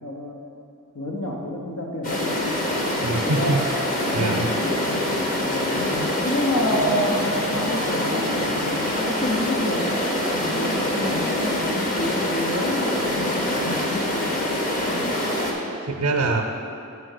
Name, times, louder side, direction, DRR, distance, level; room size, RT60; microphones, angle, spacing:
voice 1, 0.0-0.4 0.9-2.6 3.0-3.6 4.2-4.9 5.4-5.8 6.2-10.0 10.2-15.2, left 1 dB, 70° left, 0 dB, 0.8 m, -29 dB
sound 1, 2.0-15.5, left 1 dB, 40° left, 1.0 m, -25 dB
voice 2, 3.0-3.6 4.1-4.5 15.9-16.4, right 3 dB, 70° right, 1 dB, 0.6 m, -23 dB
6.7 x 4.5 x 6.5 m, 2.6 s
head